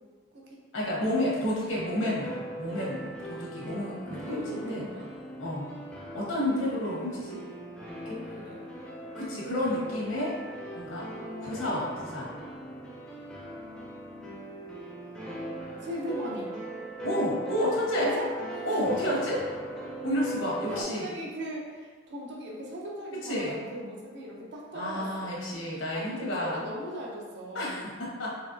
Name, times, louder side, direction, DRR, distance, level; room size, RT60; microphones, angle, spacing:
voice 1, 0.7-4.8 5.4-5.7 6.1-7.4 8.0-8.2 9.1-10.4 10.7-11.1 11.4-12.3 17.0-18.1 18.6-19.4 20.0-21.0 23.2-23.6 24.7-26.6 27.5-28.3, left 1 dB, 85° left, -5 dB, 1.2 m, -30 dB
sound 1, 1.7-20.8, right 1 dB, 5° left, 0.5 m, -39 dB
voice 2, 4.0-5.1 6.5-6.8 8.0-8.6 9.4-9.8 10.5-10.6 11.1-11.8 13.5-14.3 15.8-16.5 18.0-18.3 18.6-18.8 20.7-25.3 25.9-27.8, equal, 60° right, -3 dB, 0.7 m, -39 dB
4.3 x 3.0 x 2.7 m, 1.5 s
head